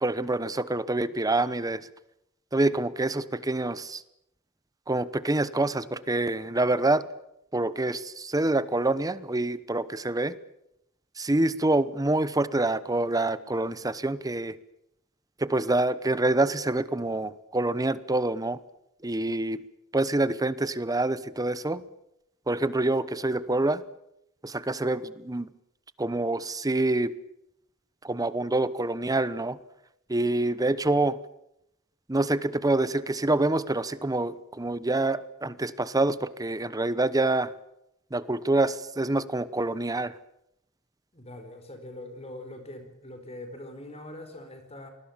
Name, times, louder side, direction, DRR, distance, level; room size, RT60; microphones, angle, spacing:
voice 1, 0.0-1.8 2.5-4.0 4.9-7.0 7.5-10.3 11.2-14.5 15.4-18.6 19.0-19.6 19.9-21.8 22.5-23.8 24.4-25.5 26.0-27.1 28.0-29.6 30.1-31.2 32.1-37.5 38.1-40.1, right 2 dB, 15° right, 16 dB, 0.9 m, -26 dB
voice 2, 41.1-44.9, left 1 dB, 30° left, 7 dB, 4.6 m, -42 dB
27.5 x 20.0 x 7.3 m, 0.80 s
head